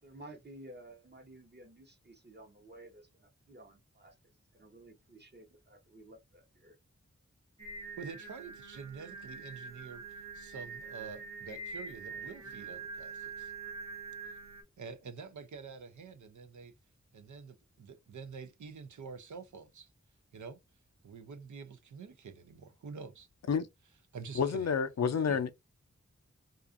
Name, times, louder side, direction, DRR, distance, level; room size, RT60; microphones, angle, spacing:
voice 1, 0.0-4.2 4.5-6.8 12.1-12.6, right 1 dB, 35° right, 0.8 m, -54 dB
Singing, 7.6-14.6, right 4 dB, 65° right, 1.1 m, -45 dB
voice 2, 8.0-13.5 14.8-16.7 17.1-19.9 20.3-20.6 21.0-23.3 24.1-24.7 25.3-25.4, right 5 dB, 85° right, 0.5 m, -47 dB
voice 3, 24.4-25.5, left 6 dB, 60° left, 0.4 m, -29 dB
2.4 x 2.4 x 2.4 m
wide cardioid pair, 45°, 29 cm